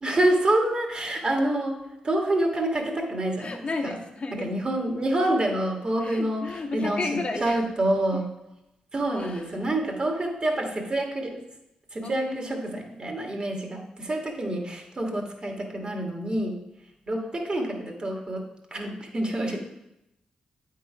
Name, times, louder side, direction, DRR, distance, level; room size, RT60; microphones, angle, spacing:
voice 1, 0.0-1.8 2.0-4.0 4.4-7.0 7.4-8.3 8.9-11.4 11.9-16.6 17.1-19.6, right 1 dB, 40° right, 1 dB, 1.7 m, -27 dB
voice 2, 3.4-4.5 6.0-7.7 8.1-8.2 9.1-9.5 12.0-12.8 17.2-17.4 19.5-19.6, left 3 dB, 50° left, 3 dB, 1.1 m, -33 dB
8.5 x 3.8 x 5.0 m, 0.87 s
supercardioid pair, 55°, 3 cm